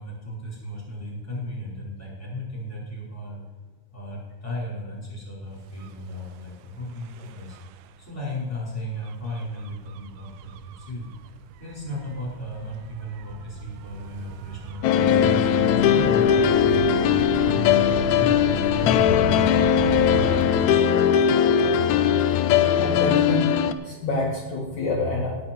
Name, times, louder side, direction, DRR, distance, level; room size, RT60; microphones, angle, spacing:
voice 1, 0.0-3.4 3.9-7.6 8.0-11.1 11.6-16.8 17.3-21.0, left 1 dB, 10° left, -4 dB, 4.9 m, -35 dB
Gull seagull / Waves surf / Siren, 5.7-20.4, right 9 dB, 80° right, 2.1 m, -37 dB
sound 1, 14.8-23.7, left 8 dB, 80° left, 1.7 m, -19 dB
voice 2, 22.8-23.5 23.8-25.4, left 2 dB, 60° left, -3 dB, 2.9 m, -26 dB
18.5 x 8.5 x 4.6 m, 1.3 s
omnidirectional pair, 3.9 m